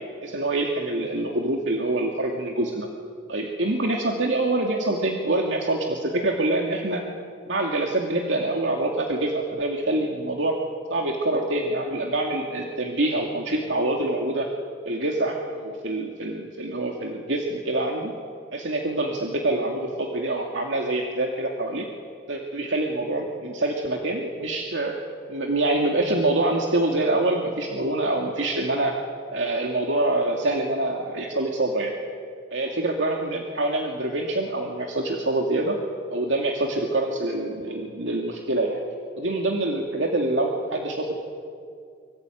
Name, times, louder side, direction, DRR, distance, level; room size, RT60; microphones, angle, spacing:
voice 1, 0.2-2.9 3.3-7.0 7.5-10.6 10.9-14.5 14.9-18.1 18.5-21.9 22.3-24.9 25.3-29.0 29.3-31.9 32.5-35.8 36.1-38.8 39.2-41.2, right 2 dB, 80° right, 1 dB, 2.5 m, -25 dB
25.0 x 25.0 x 9.3 m, 2.3 s
head